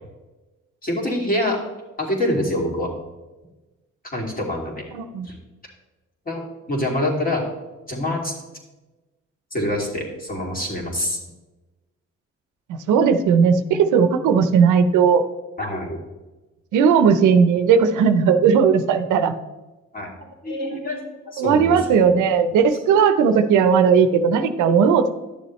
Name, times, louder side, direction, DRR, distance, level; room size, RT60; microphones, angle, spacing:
voice 1, 0.8-1.6 2.0-2.9 4.1-4.9 5.2-5.4 6.3-6.4 6.7-7.4 7.9-8.3 9.5-11.2 15.6-16.0 19.9-20.1 20.4-21.8 24.7-24.8, left 1 dB, 30° left, -1 dB, 2.6 m, -25 dB
voice 2, 4.9-5.3 12.7-15.2 16.7-19.3 21.4-25.1, right 6 dB, 90° right, 10 dB, 0.7 m, -17 dB
11.5 x 7.0 x 3.1 m, 1.1 s
cardioid pair, 90°, 30 cm